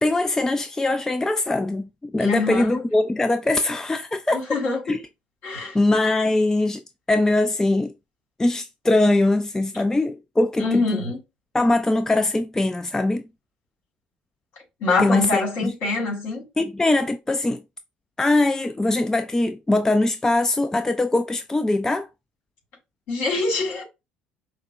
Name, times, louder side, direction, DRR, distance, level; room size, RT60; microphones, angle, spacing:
voice 1, 0.0-4.4 4.9-5.0 5.7-6.8 7.1-7.9 8.4-10.8 11.5-13.2 15.0-15.7 16.6-17.6 18.2-22.1, left 2 dB, 10° left, 0.3 m, -21 dB
voice 2, 2.2-2.8 4.3-5.0 5.4-5.8 10.6-11.2 14.8-16.5 23.1-23.8, left 3 dB, 55° left, 2.3 m, -24 dB
5.6 x 2.1 x 2.4 m
figure-of-eight pair, 55°, 4 cm